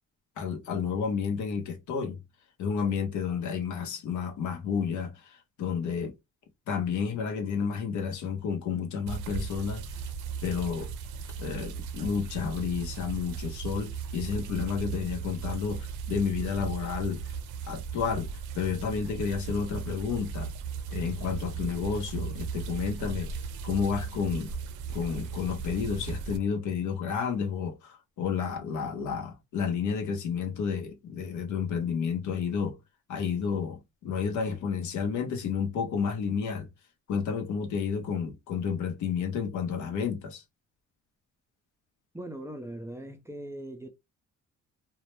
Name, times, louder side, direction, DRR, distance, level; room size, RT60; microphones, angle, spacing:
voice 1, 0.4-2.2 2.6-6.1 6.7-9.8 10.4-10.9 11.4-17.3 17.7-18.3 18.5-20.5 20.9-23.3 23.6-24.5 24.9-32.8 33.1-36.7 37.1-40.4, left 6 dB, 75° left, 0.7 m, -31 dB
sound 1, 9.1-26.4, right 6 dB, 80° right, 0.5 m, -37 dB
voice 2, 42.1-43.9, right 1 dB, 10° right, 0.4 m, -40 dB
2.2 x 2.1 x 2.9 m
cardioid pair, 90°, 30 cm